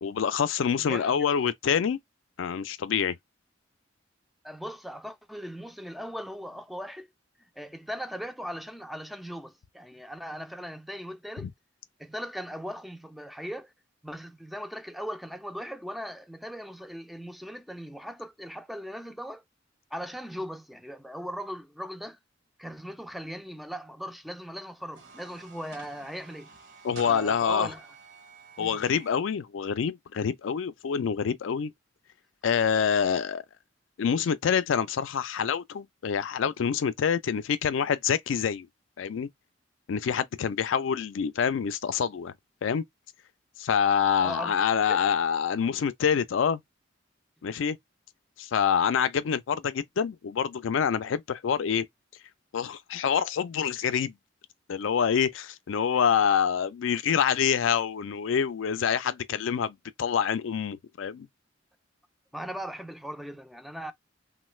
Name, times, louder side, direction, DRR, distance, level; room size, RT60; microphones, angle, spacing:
voice 1, 0.0-2.0 2.4-3.2 11.4-11.5 26.8-27.7 28.6-31.7 32.4-33.4 34.0-38.7 39.0-39.3 39.9-42.3 42.6-42.8 43.6-46.6 47.4-47.8 48.4-51.9 52.5-54.2 54.7-61.3, left 7 dB, 75° left, 0.4 m, -26 dB
voice 2, 0.8-1.1 4.4-7.1 7.6-11.5 12.0-13.7 14.0-19.4 19.9-22.2 22.6-26.5 27.1-27.9 28.6-28.8 44.2-44.5 44.9-45.0 62.3-63.9, equal, ahead, 0.4 m, -39 dB
sound 1, 24.8-29.2, right 5 dB, 60° right, 0.9 m, -50 dB
3.1 x 2.2 x 3.0 m
head